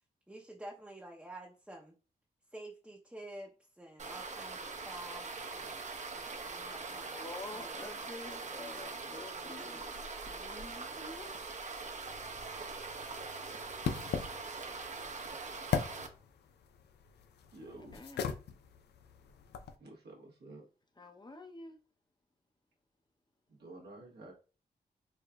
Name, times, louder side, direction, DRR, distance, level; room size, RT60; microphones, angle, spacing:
voice 1, 0.3-1.9 2.5-3.5 3.8-7.2 7.5-7.7, right 1 dB, 5° right, 0.7 m, -49 dB
sound 1, 4.0-16.1, right 4 dB, 45° right, 0.7 m, -42 dB
voice 2, 7.1-11.3 17.9-18.3 21.0-21.8, left 2 dB, 25° left, 0.7 m, -48 dB
sound 2, 12.1-19.8, left 7 dB, 85° left, 0.4 m, -40 dB
voice 3, 17.5-18.0 19.8-20.7 23.5-24.3, right 2 dB, 80° right, 1.1 m, -51 dB
4.7 x 2.4 x 2.3 m
cardioid pair, 60°, 17 cm